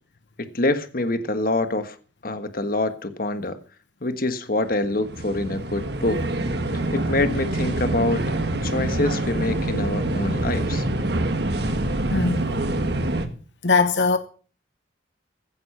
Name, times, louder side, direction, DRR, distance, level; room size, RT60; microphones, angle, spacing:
voice 1, 0.4-2.0 2.2-3.6 4.0-6.2 6.9-8.3 8.6-10.9, left 2 dB, 50° left, 1.4 m, -25 dB
sound 1, 4.6-13.3, right 1 dB, 60° right, 1.7 m, -25 dB
voice 2, 13.6-14.2, left 4 dB, 75° left, 1.1 m, -19 dB
15.5 x 9.8 x 5.8 m
head